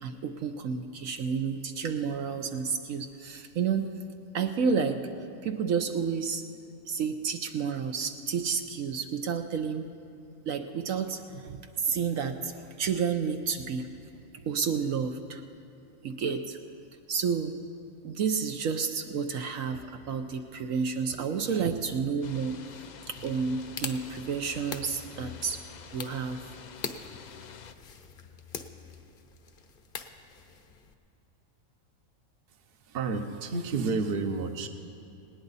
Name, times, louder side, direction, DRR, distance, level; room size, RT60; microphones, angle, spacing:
voice 1, 0.0-3.9 4.3-5.0 5.4-6.4 6.9-9.9 10.5-13.9 14.5-15.4 16.0-16.6 17.1-17.5 18.0-22.6 23.1-25.6 25.9-26.4, right 6 dB, 70° right, 6 dB, 1.1 m, -30 dB
sound 1, 22.2-27.7, left 7 dB, 70° left, 0.4 m, -48 dB
sound 2, 23.2-30.9, left 5 dB, 45° left, 0.8 m, -43 dB
voice 2, 32.8-34.7, right 4 dB, 45° right, 7 dB, 1.0 m, -30 dB
19.5 x 18.0 x 4.1 m, 2.7 s
omnidirectional pair, 1.5 m